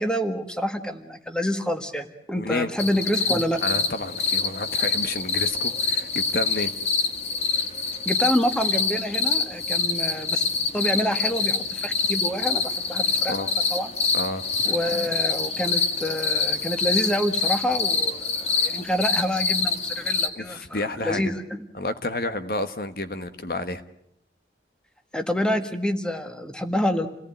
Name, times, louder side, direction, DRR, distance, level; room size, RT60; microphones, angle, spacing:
voice 1, 0.0-3.6 8.0-13.4 13.7-13.9 14.6-21.6 25.1-27.1, equal, 5° left, 7 dB, 1.7 m, -27 dB
voice 2, 2.3-2.7 3.6-6.7 13.3-13.5 14.1-14.4 20.3-21.3 21.7-23.8, left 2 dB, 55° left, 9 dB, 1.4 m, -30 dB
sound 1, 2.8-20.3, left 4 dB, 35° left, 1.9 m, -26 dB
29.0 x 18.0 x 9.1 m, 0.72 s
head